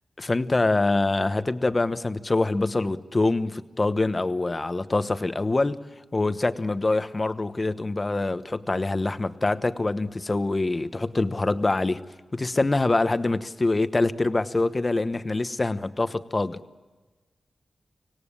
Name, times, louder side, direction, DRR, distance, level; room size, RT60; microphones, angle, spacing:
voice 1, 0.2-5.8 6.1-12.0 12.3-16.6, left 2 dB, 35° left, 1.1 m, -25 dB
25.5 x 18.0 x 8.9 m
cardioid pair, 65°, 0 cm